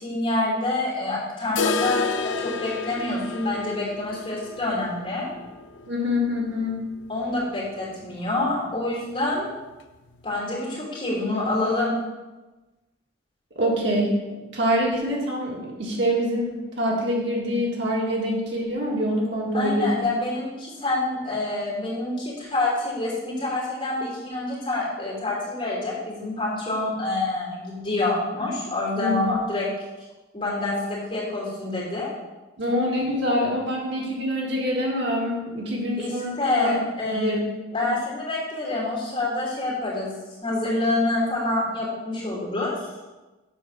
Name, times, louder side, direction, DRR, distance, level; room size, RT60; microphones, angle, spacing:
voice 1, 0.0-5.3 7.1-9.5 10.2-12.0 19.5-29.7 30.3-32.1 36.0-37.4 37.7-40.1 40.4-42.9, left 2 dB, 30° left, -6 dB, 2.9 m, -27 dB
sound 1, 1.6-7.4 7.7-7.8 8.1-8.2 8.7-8.8 9.7-9.8, left 4 dB, 80° left, 0.6 m, -31 dB
voice 2, 5.9-6.8 13.6-19.9 28.9-29.3 32.6-36.8 37.1-37.4 37.8-37.9, equal, 70° right, -2 dB, 1.8 m, -25 dB
7.1 x 4.7 x 6.2 m, 1.1 s
head